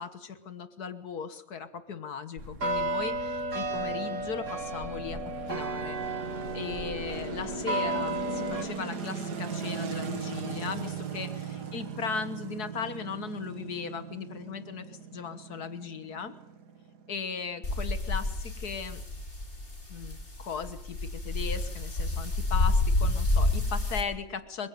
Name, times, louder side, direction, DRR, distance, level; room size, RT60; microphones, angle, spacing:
voice 1, 0.0-5.2 5.5-6.0 6.5-16.3 17.1-19.0 19.9-24.7, left 6 dB, 75° left, 12 dB, 1.9 m, -37 dB
sound 1, 2.4-8.6, right 2 dB, 50° right, 2.5 m, -33 dB
sound 2, 3.6-17.8, right 6 dB, 90° right, 2.4 m, -39 dB
sound 3, 17.6-24.0, left 2 dB, 45° left, 4.8 m, -29 dB
23.0 x 21.5 x 9.3 m, 0.79 s
omnidirectional pair, 1.7 m